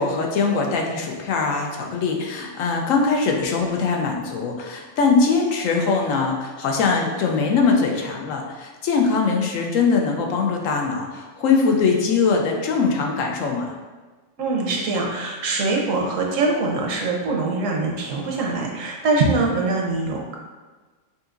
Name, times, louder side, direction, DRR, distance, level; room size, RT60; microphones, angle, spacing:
voice 1, 0.0-13.7, left 4 dB, 85° left, 1 dB, 1.1 m, -22 dB
voice 2, 14.4-20.4, right 3 dB, 80° right, 0 dB, 1.1 m, -23 dB
5.4 x 2.7 x 2.5 m, 1.3 s
omnidirectional pair, 1.3 m